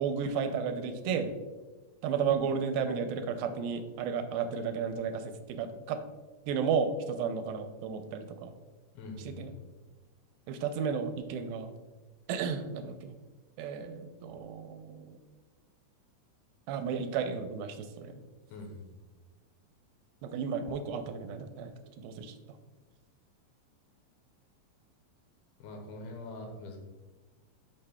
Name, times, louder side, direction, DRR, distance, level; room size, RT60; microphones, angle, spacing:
voice 1, 0.0-1.4 2.0-6.0 6.5-8.5 9.3-9.5 10.5-11.7 12.3-13.1 13.6-15.2 16.7-18.2 20.2-22.4, right 6 dB, 85° right, 8 dB, 2.3 m, -33 dB
voice 2, 8.9-9.6 18.5-18.8 25.6-26.8, left 2 dB, 85° left, 2 dB, 2.9 m, -43 dB
8.8 x 6.2 x 2.2 m, 1.2 s
omnidirectional pair, 4.3 m